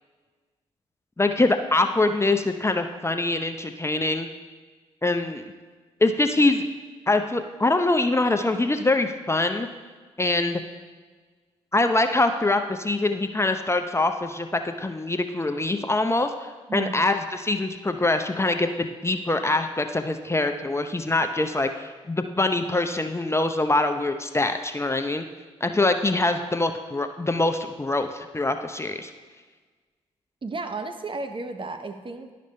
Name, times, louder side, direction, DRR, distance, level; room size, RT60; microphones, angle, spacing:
voice 1, 1.2-4.3 5.0-5.4 6.0-6.7 7.1-9.7 10.2-10.6 11.7-16.3 16.7-25.2 25.6-29.1, left 2 dB, 20° left, 7 dB, 0.6 m, -24 dB
voice 2, 30.4-32.3, right 3 dB, 40° right, 7 dB, 0.8 m, -33 dB
11.5 x 5.1 x 3.3 m, 1.4 s
hypercardioid pair, 40°, 14 cm